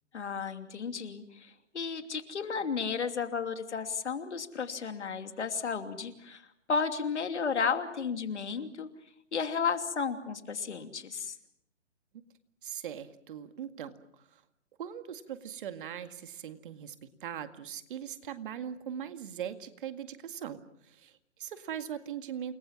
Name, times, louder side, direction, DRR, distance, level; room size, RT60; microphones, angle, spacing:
voice 1, 0.1-6.4 6.7-8.9 9.3-11.4, left 5 dB, 70° left, 8 dB, 3.0 m, -33 dB
voice 2, 12.6-14.4 14.8-22.5, right 9 dB, 45° right, 9 dB, 2.1 m, -40 dB
29.0 x 22.0 x 7.4 m, 0.76 s
hypercardioid pair, 140°, 36 cm